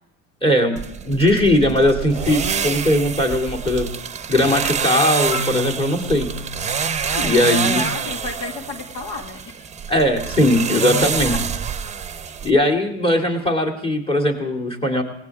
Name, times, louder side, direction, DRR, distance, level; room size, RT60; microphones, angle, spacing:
voice 1, 0.4-3.9 4.3-6.3 7.2-7.8 9.9-11.4 12.4-15.0, left 1 dB, 15° left, 2 dB, 2.7 m, -19 dB
sound 1, 0.8-12.5, right 7 dB, 20° right, 0.9 m, -26 dB
Marimba xylophone, 5.3-9.2, left 6 dB, 55° left, 2.6 m, -36 dB
voice 2, 7.0-9.6 10.8-11.4, left 3 dB, 85° left, 5 dB, 2.3 m, -31 dB
19.0 x 18.0 x 3.6 m, 0.75 s
supercardioid pair, 95°, 35 cm